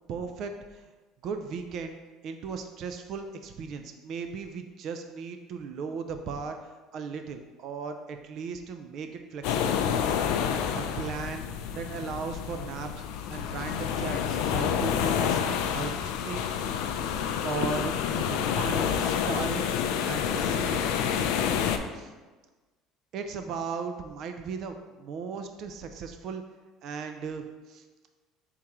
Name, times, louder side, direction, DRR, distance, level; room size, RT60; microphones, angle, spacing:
voice 1, 0.1-0.9 1.2-2.0 2.2-9.8 10.1-10.3 10.7-11.5 11.7-13.0 13.3-16.5 17.4-19.7 20.0-20.9 21.9-22.1 23.1-26.4 26.8-27.8, right 5 dB, 55° right, 6 dB, 0.3 m, -37 dB
sound 1, 9.4-21.8, left 8 dB, 80° left, 0.3 m, -28 dB
3.5 x 2.9 x 4.6 m, 1.3 s
cardioid pair, 130°, 0 cm